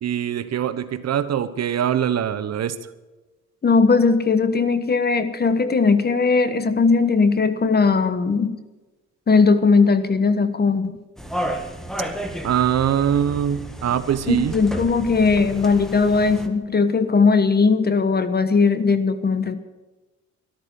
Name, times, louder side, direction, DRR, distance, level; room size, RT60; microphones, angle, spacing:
voice 1, 0.0-2.8 12.4-14.5, right 9 dB, 60° right, 13 dB, 1.1 m, -22 dB
voice 2, 3.6-8.5 9.3-11.0 14.3-19.5, left 4 dB, 35° left, 12 dB, 1.2 m, -18 dB
sound 1, 11.2-16.5, right 1 dB, ahead, 1.8 m, -32 dB
13.0 x 12.5 x 6.9 m, 1.1 s
cardioid pair, 90°, 30 cm